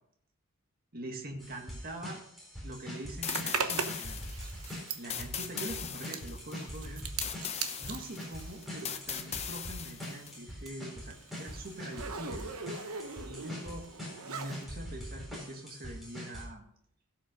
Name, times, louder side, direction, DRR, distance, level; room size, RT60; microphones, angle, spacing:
voice 1, 0.9-2.2 2.6-4.2 4.9-7.0 7.8-12.5 13.2-13.9 14.2-16.6, right 1 dB, 40° right, 2 dB, 1.8 m, -43 dB
sound 1, 1.4-16.4, equal, ahead, 4.0 m, -44 dB
sound 2, 3.2-10.4, left 8 dB, 30° left, 0.8 m, -39 dB
Zipper (clothing), 3.2-9.4 9.7-14.7, right 5 dB, 75° right, 1.0 m, -40 dB
16.5 x 5.8 x 5.2 m, 0.70 s
head